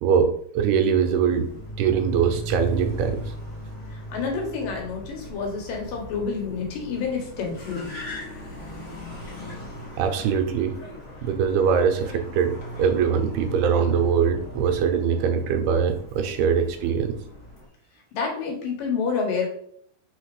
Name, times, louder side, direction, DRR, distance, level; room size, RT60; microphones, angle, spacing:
voice 1, 0.0-1.5 1.8-3.2 8.8-8.9 10.0-10.8 11.2-12.5 12.8-17.2, right 7 dB, 80° right, 6 dB, 2.7 m, -22 dB
Car, 0.9-17.7, equal, 30° left, 1.3 m, -38 dB
voice 2, 3.9-7.9 18.1-19.5, left 5 dB, 65° left, 1 dB, 2.7 m, -28 dB
5.8 x 4.2 x 4.8 m, 0.63 s
omnidirectional pair, 4.5 m